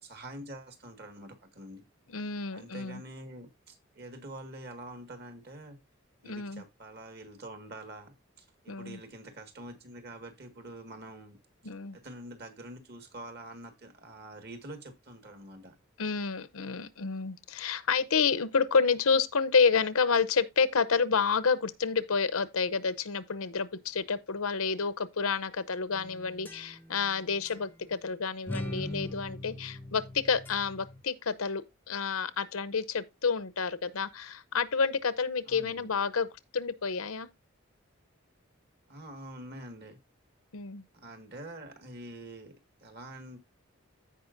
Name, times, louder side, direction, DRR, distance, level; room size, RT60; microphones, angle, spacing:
voice 1, 0.0-1.8 2.5-5.8 6.2-11.4 11.9-15.8 35.5-35.9 38.9-40.0 40.9-42.5 42.8-43.4, right 1 dB, 50° right, 1.8 m, -46 dB
voice 2, 2.1-3.0 6.2-6.6 8.7-9.0 11.6-12.0 16.0-36.3 36.5-37.3 40.5-40.8, left 5 dB, 85° left, 0.8 m, -29 dB
sound 1, 25.9-27.1 27.4-27.6 28.5-31.0, left 1 dB, 10° left, 0.6 m, -41 dB
15.0 x 5.2 x 2.6 m
head